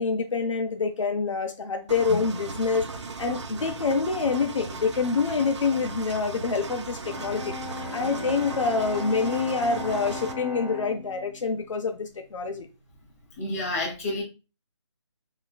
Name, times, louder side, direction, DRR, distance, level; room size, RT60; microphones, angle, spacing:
voice 1, 0.0-2.9 3.2-7.5 7.9-12.7, left 4 dB, 90° left, 0.5 m, -26 dB
Engine, 1.9-10.3, right 4 dB, 70° right, 0.4 m, -37 dB
sound 1, 2.1-4.5, left 3 dB, 65° left, 1.2 m, -42 dB
Bowed string instrument, 7.0-13.0, left 3 dB, 10° left, 0.6 m, -38 dB
voice 2, 13.4-14.2, left 2 dB, 30° left, 1.0 m, -29 dB
3.1 x 2.4 x 2.2 m
hypercardioid pair, 175°, 16 cm